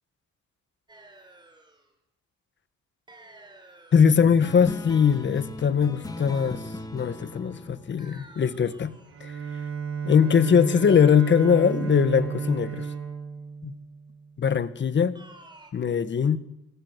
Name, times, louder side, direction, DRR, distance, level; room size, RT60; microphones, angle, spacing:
sound 1, 0.9-1.9 3.1-4.4 8.0-9.3 10.7-12.0 15.1-15.7, right 2 dB, 15° right, 4.4 m, -52 dB
voice 1, 3.9-8.9 9.2-9.3 10.0-12.9 13.6-13.8 14.4-15.2 15.7-16.4, left 7 dB, 40° left, 13 dB, 1.5 m, -21 dB
sound 2, 4.2-9.1, left 2 dB, 10° left, 1.7 m, -39 dB
Bowed string instrument, 9.1-14.3, right 6 dB, 45° right, 5.9 m, -32 dB
27.0 x 22.5 x 8.2 m, 0.92 s
cardioid pair, 145°, 29 cm